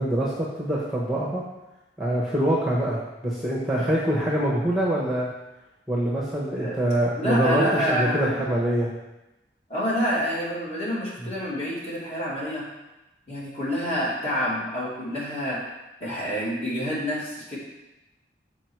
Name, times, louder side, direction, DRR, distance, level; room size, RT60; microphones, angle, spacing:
voice 1, 0.0-1.4 2.0-5.3 5.9-8.9 11.2-11.3, right 1 dB, ahead, -6 dB, 1.1 m, -25 dB
voice 2, 7.2-8.3 9.7-12.6 13.3-15.6 16.0-17.6, equal, 35° left, -7 dB, 2.6 m, -27 dB
6.9 x 4.9 x 4.6 m, 0.98 s
head